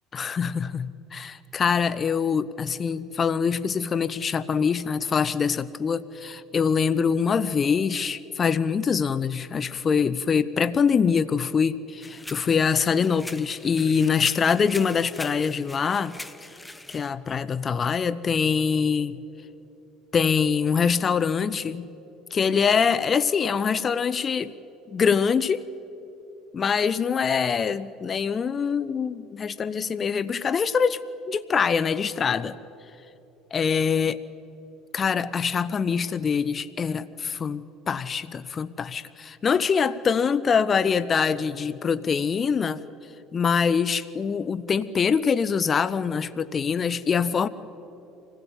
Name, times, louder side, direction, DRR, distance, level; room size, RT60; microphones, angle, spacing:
voice 1, 0.1-16.2 16.9-19.2 20.1-21.9 22.3-24.5 24.9-25.6 26.5-31.0 31.3-32.6 33.5-34.2 34.9-42.8 43.3-47.5, left 6 dB, 35° left, 15 dB, 0.7 m, -24 dB
sound 1, 12.0-17.1, left 2 dB, 10° left, 1.1 m, -42 dB
25.0 x 16.5 x 8.7 m, 3.0 s
hypercardioid pair, 75°, 0 cm